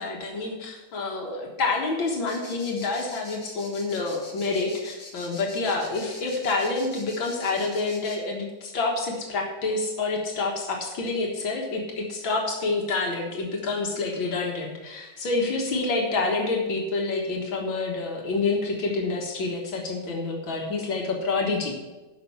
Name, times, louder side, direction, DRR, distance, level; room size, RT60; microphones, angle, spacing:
voice 1, 0.0-21.7, left 3 dB, 80° left, 0 dB, 2.3 m, -28 dB
sound 1, 2.3-8.2, left 2 dB, 45° left, 2.3 m, -44 dB
12.0 x 5.4 x 7.0 m, 1.2 s
omnidirectional pair, 2.1 m